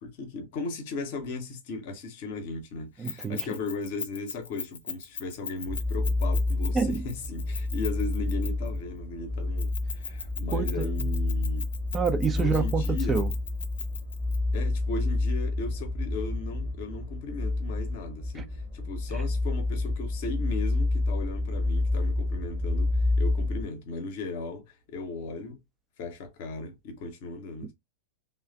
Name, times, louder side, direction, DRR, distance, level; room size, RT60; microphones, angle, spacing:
voice 1, 0.0-11.7 12.4-13.2 14.5-22.9 23.2-25.6 26.0-27.7, left 3 dB, 50° left, 0.8 m, -37 dB
Keys jangling, 3.0-8.8 9.6-14.4, left 5 dB, 70° left, 0.4 m, -38 dB
voice 2, 3.0-3.4 6.7-7.0 10.5-10.9 11.9-13.3, right 5 dB, 20° right, 0.5 m, -27 dB
sound 1, 5.7-23.6, left 2 dB, ahead, 0.8 m, -29 dB
3.1 x 2.2 x 2.3 m
figure-of-eight pair, 90°, 0 cm